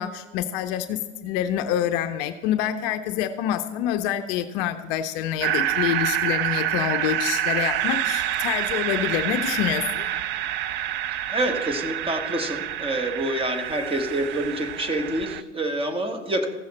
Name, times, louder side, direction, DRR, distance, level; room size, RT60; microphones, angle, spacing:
voice 1, 0.0-10.1, left 11 dB, 50° left, 9 dB, 0.6 m, -27 dB
sound 1, 5.4-15.4, right 11 dB, 30° right, 0.4 m, -27 dB
voice 2, 11.3-16.5, right 1 dB, 15° right, 5 dB, 1.3 m, -27 dB
15.0 x 6.3 x 4.2 m, 1.3 s
hypercardioid pair, 90°, 37 cm